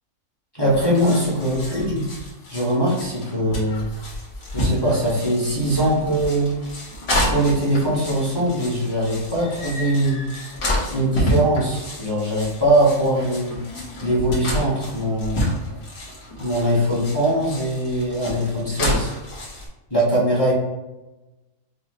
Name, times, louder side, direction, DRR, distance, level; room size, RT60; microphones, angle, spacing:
voice 1, 0.5-2.0 2.5-3.8 4.5-6.6 7.3-10.2 10.9-13.5 14.0-15.5 16.4-19.1 19.9-20.5, right 1 dB, 20° left, -7 dB, 0.9 m, -21 dB
sound 1, 0.6-19.7, left 1 dB, 50° left, 1.4 m, -29 dB
5.2 x 2.2 x 2.8 m, 1.1 s
omnidirectional pair, 1.7 m